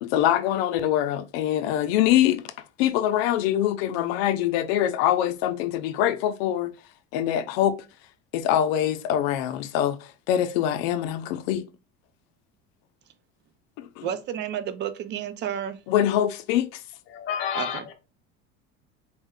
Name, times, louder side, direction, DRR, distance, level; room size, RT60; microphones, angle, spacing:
voice 1, 0.0-2.4 2.8-6.7 7.1-7.8 8.3-11.7 13.8-14.1 15.9-16.8, left 11 dB, 80° left, 0.6 m, -24 dB
voice 2, 14.0-15.8 17.5-17.9, right 9 dB, 35° right, 0.5 m, -31 dB
voice 3, 17.1-17.9, left 8 dB, 40° left, 0.7 m, -30 dB
4.3 x 2.1 x 3.6 m
cardioid pair, 150°, 30 cm